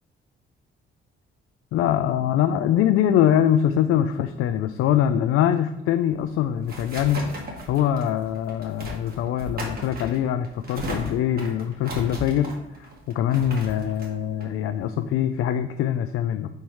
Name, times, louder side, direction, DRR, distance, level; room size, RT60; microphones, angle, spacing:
voice 1, 1.7-7.2 7.7-12.5 12.8-16.5, left 10 dB, 80° left, 8 dB, 0.4 m, -23 dB
sound 1, 6.1-15.3, equal, 45° right, 1.5 m, -37 dB
4.7 x 4.5 x 5.4 m, 0.92 s
cardioid pair, 120°, 21 cm